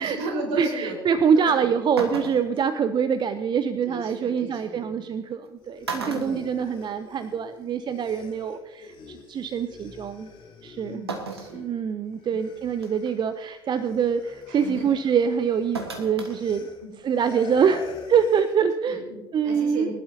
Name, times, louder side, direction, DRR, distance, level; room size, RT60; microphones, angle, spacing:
voice 1, 0.0-1.0 1.3-1.7 3.8-5.0 6.0-6.6 10.8-11.7 14.5-14.9 16.8-16.9 18.8-19.9, right 1 dB, 60° right, 1 dB, 4.6 m, -35 dB
voice 2, 0.6-10.3 10.6-11.0 11.5-16.7 17.0-19.0 19.3-19.9, right 7 dB, 35° right, 11 dB, 0.6 m, -25 dB
sound 1, 1.4-1.5 2.0-2.6 4.2-4.3 5.3-5.5 5.8-7.2 7.6-7.7 8.9-9.0 11.1-11.6 12.1-12.2 12.8-13.1 15.7-16.4 16.7-16.8, right 3 dB, 85° right, 1.3 m, -34 dB
sound 2, 5.6-11.8 12.1-18.6, left 5 dB, 40° left, 3.1 m, -47 dB
22.5 x 11.5 x 2.8 m, 1.2 s
figure-of-eight pair, 60°, 13 cm